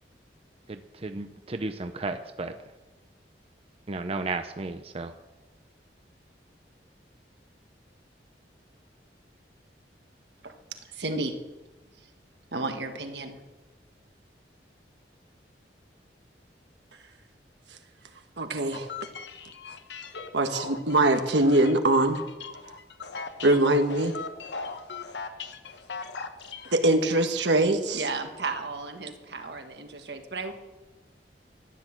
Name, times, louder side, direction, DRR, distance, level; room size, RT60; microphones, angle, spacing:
voice 1, 0.7-2.5 3.9-5.1, right 3 dB, 35° right, 8 dB, 0.6 m, -33 dB
voice 2, 10.9-11.4 12.5-13.4 27.9-30.5, right 3 dB, 70° right, 6 dB, 1.6 m, -33 dB
voice 3, 18.4-18.9 20.3-22.2 23.4-24.1 26.7-28.0, right 2 dB, 85° right, 6 dB, 1.5 m, -22 dB
sound 1, 18.7-26.8, left 4 dB, 80° left, 1.2 m, -39 dB
14.5 x 10.5 x 7.5 m, 1.1 s
head